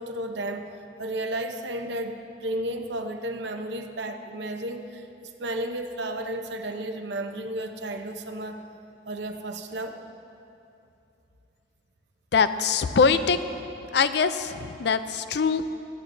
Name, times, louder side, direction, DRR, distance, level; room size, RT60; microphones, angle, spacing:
voice 1, 0.0-8.6 9.1-10.0, right 1 dB, 75° right, 5 dB, 0.8 m, -33 dB
voice 2, 12.3-13.4 13.9-15.6, left 5 dB, 65° left, 11 dB, 0.4 m, -23 dB
23.5 x 9.0 x 2.7 m, 2.7 s
head